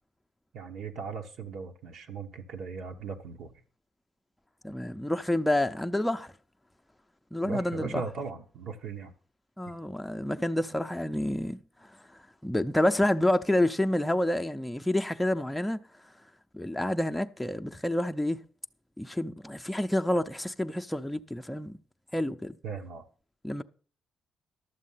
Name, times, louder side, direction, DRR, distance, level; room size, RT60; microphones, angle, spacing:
voice 1, 0.5-3.5 7.4-9.1 22.6-23.0, right 5 dB, 75° right, 1.2 m, -38 dB
voice 2, 4.6-6.3 7.3-8.0 9.6-11.6 12.4-15.8 16.5-18.4 19.0-21.8 22.1-22.6 23.4-23.6, left 1 dB, 5° left, 0.6 m, -28 dB
12.0 x 7.4 x 5.6 m
cardioid pair, 90°, 0 cm